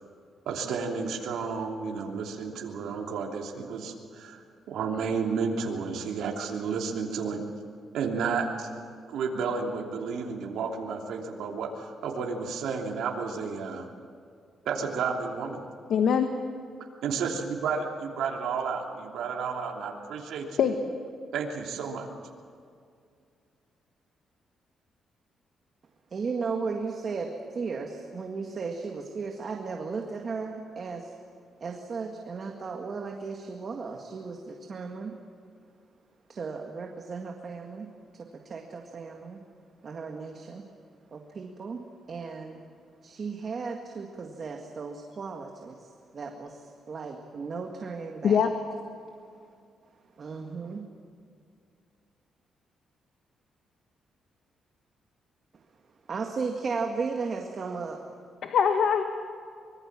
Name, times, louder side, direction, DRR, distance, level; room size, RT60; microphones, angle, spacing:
voice 1, 0.4-4.4 4.7-7.4 7.9-8.8 9.1-13.9 14.6-15.6 17.0-20.6 21.3-22.1, right 5 dB, 85° right, 0 dB, 3.0 m, -32 dB
voice 2, 15.9-16.3 20.6-20.7 48.2-48.5 58.4-59.0, left 7 dB, 65° left, 6 dB, 1.4 m, -22 dB
voice 3, 26.1-31.1 31.6-35.2 36.3-37.9 38.1-39.4 39.8-40.7 41.1-42.6 43.0-48.4 50.2-50.8 56.1-58.0, right 4 dB, 40° right, 2 dB, 1.9 m, -35 dB
25.0 x 22.5 x 7.5 m, 2.3 s
cardioid pair, 145°, 0 cm